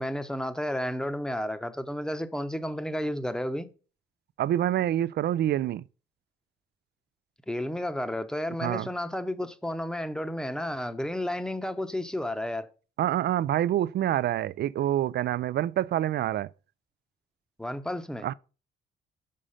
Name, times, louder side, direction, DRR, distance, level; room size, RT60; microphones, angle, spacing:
voice 1, 0.0-3.7 7.5-12.7 17.6-18.3, left 1 dB, 5° left, 0.8 m, -32 dB
voice 2, 4.4-5.8 8.6-8.9 13.0-16.5 18.2-18.3, right 12 dB, 60° right, 0.4 m, -26 dB
6.6 x 5.0 x 5.5 m
cardioid pair, 90°, 20 cm